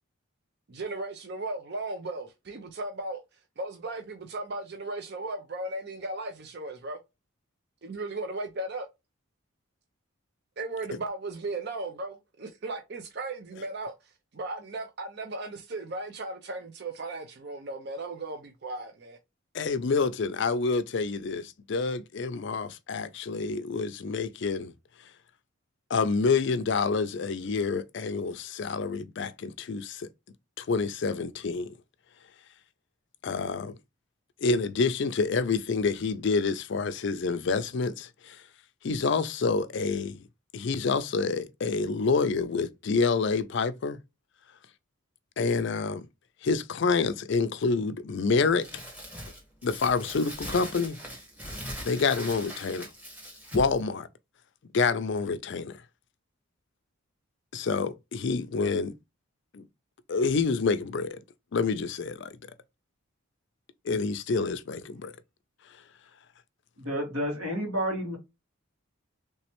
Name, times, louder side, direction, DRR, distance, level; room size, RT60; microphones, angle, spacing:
voice 1, 0.7-3.2 3.6-7.0 7.8-8.9 10.6-13.9 14.3-19.2, right 2 dB, 50° right, 0.5 m, -36 dB
voice 2, 19.5-24.7 25.9-30.1 30.6-31.7 33.2-33.8 34.4-38.4 38.8-40.2 40.5-44.0 45.4-46.1 46.4-48.7 49.6-51.0 51.8-52.9 53.5-54.1 54.7-55.8 57.5-58.9 59.5-59.6 60.1-61.2 61.5-62.3 63.8-65.1, left 4 dB, 55° left, 0.4 m, -28 dB
Crumpling crinkling, 48.6-53.8, equal, 10° right, 1.1 m, -40 dB
voice 3, 66.8-68.2, equal, 85° right, 2.0 m, -30 dB
3.3 x 3.1 x 2.9 m
head